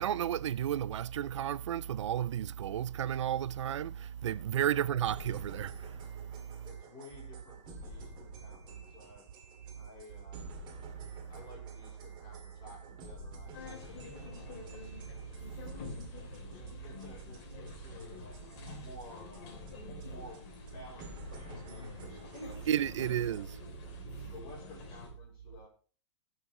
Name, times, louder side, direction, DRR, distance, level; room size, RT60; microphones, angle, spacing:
voice 1, 0.0-6.2 22.7-23.5, right 10 dB, 90° right, 0.4 m, -32 dB
sound 1, 5.0-19.7 20.0-20.1 20.3-20.4 20.7-20.8 21.0-23.4, right 1 dB, 30° right, 2.2 m, -52 dB
voice 2, 6.6-9.3 9.7-10.4 11.3-14.6 15.6-16.0 16.5-21.7 22.5-23.3 24.3-25.7, left 2 dB, 30° left, 5.3 m, -54 dB
sound 2, 13.5-25.1, left 3 dB, 45° left, 3.1 m, -47 dB
18.5 x 6.3 x 3.0 m
hypercardioid pair, 140°, 15 cm